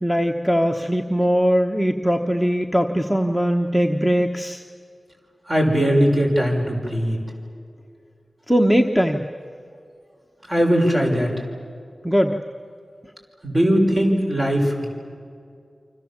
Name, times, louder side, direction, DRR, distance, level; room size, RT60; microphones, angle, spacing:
voice 1, 0.0-4.6 8.5-9.3 12.0-12.4, equal, ahead, 2 dB, 1.1 m, -20 dB
voice 2, 5.5-7.2 10.5-11.3 13.4-14.9, equal, 35° right, 1 dB, 5.9 m, -19 dB
28.5 x 26.0 x 7.4 m, 2.3 s
wide cardioid pair, 95°, 0 cm